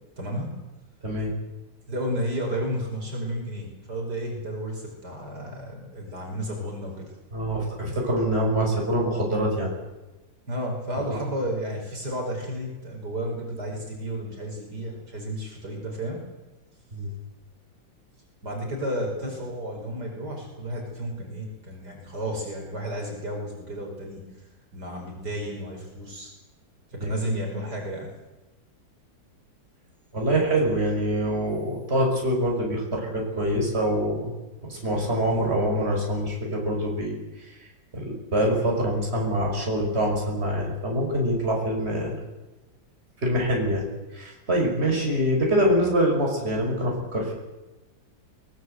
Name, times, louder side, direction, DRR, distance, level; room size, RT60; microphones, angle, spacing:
voice 1, 0.2-0.5 1.9-7.1 10.5-16.2 18.4-24.3 24.7-26.3 26.9-28.1, equal, 55° right, 1 dB, 5.8 m, -32 dB
voice 2, 7.3-9.7 11.1-11.2 16.9-17.1 27.0-27.1 30.1-34.3 34.6-37.6 37.9-42.2 43.2-43.9 44.1-47.3, equal, 30° right, -1 dB, 5.9 m, -25 dB
23.0 x 20.5 x 8.0 m, 1.1 s
omnidirectional pair, 2.1 m